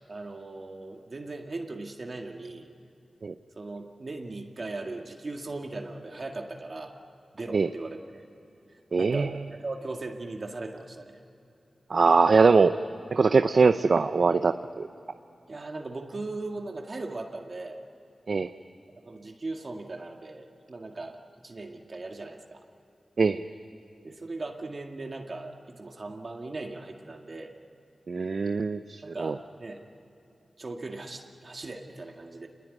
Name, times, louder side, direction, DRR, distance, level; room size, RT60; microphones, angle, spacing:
voice 1, 0.1-2.7 3.6-7.0 7.3-8.3 9.0-11.2 15.5-17.8 18.9-22.6 24.0-27.5 29.0-29.8 30.6-32.5, right 2 dB, 50° right, 2 dB, 2.0 m, -38 dB
voice 2, 8.9-9.3 11.9-12.7 13.1-14.9 18.3-18.5 23.2-23.4 28.1-29.3, right 4 dB, 65° right, 10 dB, 0.6 m, -22 dB
27.5 x 20.0 x 9.8 m, 2.9 s
wide cardioid pair, 75°, 0 cm